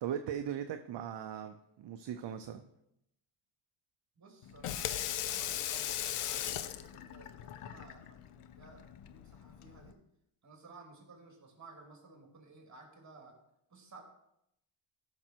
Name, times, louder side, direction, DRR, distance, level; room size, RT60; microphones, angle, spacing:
voice 1, 0.0-2.7, right 9 dB, 55° right, 7 dB, 0.7 m, -39 dB
voice 2, 4.2-10.0 10.4-13.4 13.7-14.0, right 3 dB, 35° right, 1 dB, 3.1 m, -55 dB
Water tap faucet / Sink (filling or washing), 4.4-9.9, left 11 dB, 85° left, 0.8 m, -39 dB
14.5 x 6.1 x 4.5 m, 0.80 s
cardioid pair, 120°, 50 cm